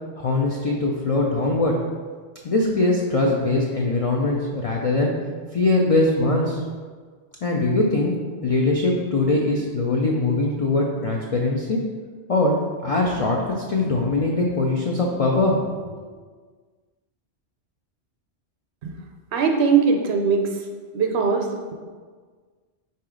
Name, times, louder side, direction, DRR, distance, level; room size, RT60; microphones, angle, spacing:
voice 1, 0.2-1.8 2.4-5.1 5.5-6.6 7.4-8.1 8.4-11.8 12.3-12.5 12.8-13.4 13.7-15.6 15.9-16.0, left 2 dB, 70° left, -1 dB, 0.3 m, -21 dB
voice 2, 19.3-20.5 20.9-21.7, right 5 dB, 75° right, 3 dB, 0.8 m, -20 dB
3.8 x 2.8 x 4.8 m, 1.5 s
omnidirectional pair, 1.2 m